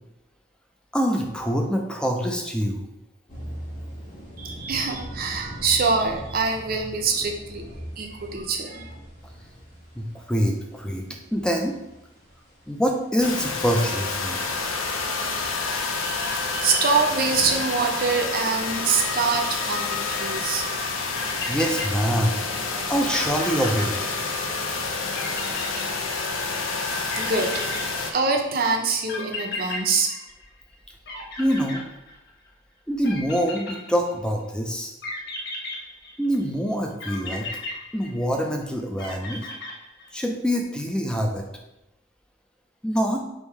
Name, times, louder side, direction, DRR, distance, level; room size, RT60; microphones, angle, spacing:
voice 1, 0.9-2.9 10.0-11.1 11.3-11.7 12.7-14.4 21.5-22.4 22.9-24.0 31.4-31.8 32.9-34.9 36.2-37.5 37.9-39.5 40.1-41.5 42.8-43.2, equal, 5° left, 2 dB, 0.4 m, -25 dB
sound 1, 3.3-13.7, equal, 35° left, 1.2 m, -41 dB
voice 2, 4.4-7.6 8.0-8.9 16.0-20.7 27.2-30.2, right 4 dB, 50° right, 2 dB, 0.6 m, -25 dB
sound 2, 13.2-28.1, left 4 dB, 90° left, 0.6 m, -28 dB
sound 3, 21.2-22.5 22.8-22.9 23.1-24.6 25.1-26.5 27.1-28.4 29.1-30.8 31.1-32.5 33.0-34.3 35.0-36.4 37.0-38.5 39.0-40.2, left 2 dB, 55° left, 0.9 m, -35 dB
3.5 x 2.7 x 4.5 m, 0.90 s
head